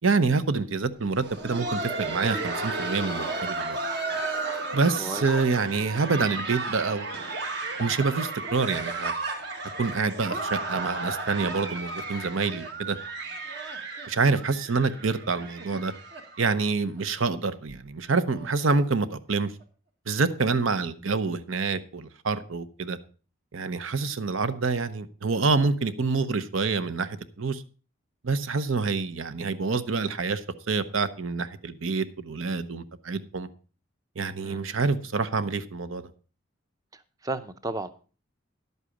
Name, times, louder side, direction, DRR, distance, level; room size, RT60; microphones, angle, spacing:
voice 1, 0.0-3.8 4.7-7.1 7.8-9.1 9.8-13.0 14.1-15.9 16.4-19.5 20.1-23.0 23.5-27.6 28.2-33.5 34.2-36.1, right 4 dB, 75° right, 0.8 m, -27 dB
Laughter, 1.0-16.7 17.0-17.1 17.7-17.8 18.3-18.5 19.6-19.7, right 3 dB, 55° right, 1.6 m, -33 dB
voice 2, 36.9-37.9, right 2 dB, 15° right, 0.6 m, -34 dB
11.0 x 8.2 x 5.0 m
head